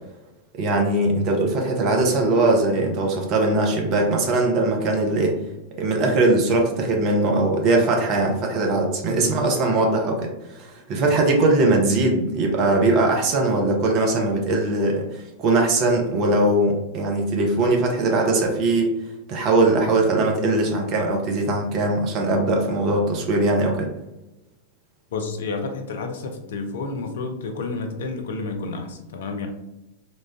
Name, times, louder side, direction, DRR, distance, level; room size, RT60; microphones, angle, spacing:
voice 1, 0.6-5.4 5.8-19.0 19.3-23.9, right 2 dB, 40° right, 1 dB, 0.8 m, -21 dB
voice 2, 9.1-9.4 25.1-29.5, left 3 dB, 60° left, 4 dB, 0.6 m, -30 dB
4.1 x 2.4 x 3.4 m, 0.96 s
figure-of-eight pair, 90°, 0 cm